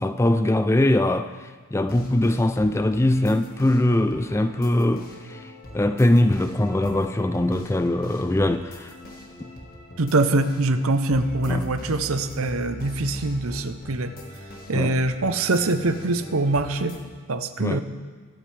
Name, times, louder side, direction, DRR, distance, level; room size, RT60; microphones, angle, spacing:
voice 1, 0.0-5.5 5.7-8.9 11.5-11.7 14.7-15.0 17.6-17.8, left 1 dB, 10° left, 9 dB, 0.3 m, -22 dB
sound 1, 1.9-17.0, left 1 dB, 40° left, 1.6 m, -41 dB
voice 2, 10.0-14.1 14.7-17.0 17.3-17.8, right 2 dB, 70° right, 10 dB, 0.8 m, -23 dB
21.5 x 8.7 x 3.4 m, 1.5 s
head